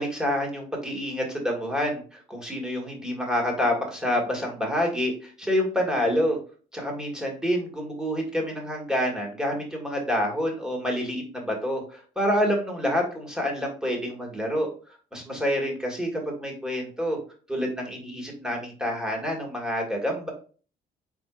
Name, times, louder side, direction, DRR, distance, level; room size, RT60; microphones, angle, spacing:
voice 1, 0.0-6.4 6.7-14.7 15.1-17.2 17.5-20.3, equal, 5° right, 0 dB, 1.7 m, -27 dB
4.5 x 3.9 x 2.4 m, 0.38 s
cardioid pair, 110°, 17 cm